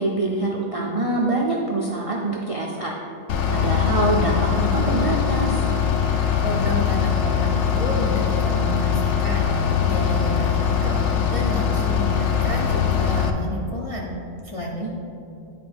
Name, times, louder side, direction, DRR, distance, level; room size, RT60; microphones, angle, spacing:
voice 1, 0.0-2.9 3.5-5.6 14.8-14.9, right 2 dB, 50° right, -2 dB, 0.4 m, -24 dB
Bus / Idling, 3.3-13.3, left 7 dB, 70° left, 0.8 m, -22 dB
voice 2, 6.4-11.0 11.3-14.1 14.4-14.9, left 1 dB, 45° left, -4 dB, 0.4 m, -30 dB
10.0 x 4.1 x 3.4 m, 2.7 s
omnidirectional pair, 1.4 m